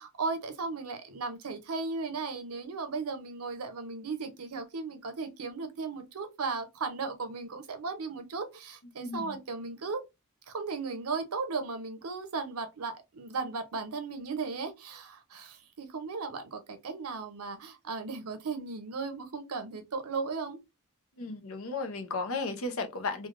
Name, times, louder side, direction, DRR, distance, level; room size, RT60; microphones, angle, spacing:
voice 1, 0.0-10.0 10.5-20.6, right 4 dB, 90° right, 0.7 m, -36 dB
voice 2, 9.0-9.4 21.2-23.3, left 3 dB, 65° left, 0.6 m, -34 dB
3.2 x 2.3 x 2.5 m
head